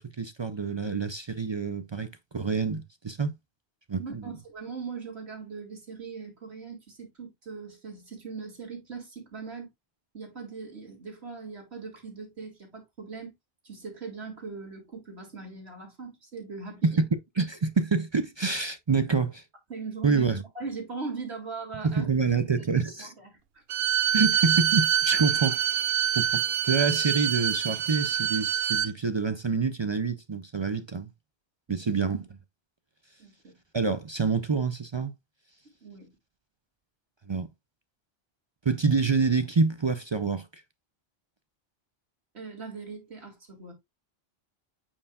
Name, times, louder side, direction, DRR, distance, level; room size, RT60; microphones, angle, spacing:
voice 1, 0.0-2.1 2.3-3.3 3.9-4.2 16.8-17.0 17.4-19.4 20.0-20.4 21.8-23.1 24.1-25.8 26.2-26.4 26.7-31.1 31.7-32.3 33.7-35.1 37.3-37.5 38.7-40.6, right 4 dB, 40° right, 0.4 m, -27 dB
voice 2, 4.0-9.7 10.1-13.3 13.6-17.0 19.7-20.2 20.5-22.1 22.3-22.7 23.0-23.9 31.7-31.8 33.2-33.6 35.8-36.1 42.3-43.7, right 4 dB, 90° right, 2.9 m, -40 dB
Bowed string instrument, 23.7-28.9, right 10 dB, 70° right, 0.8 m, -25 dB
8.6 x 4.6 x 2.3 m
omnidirectional pair, 1.1 m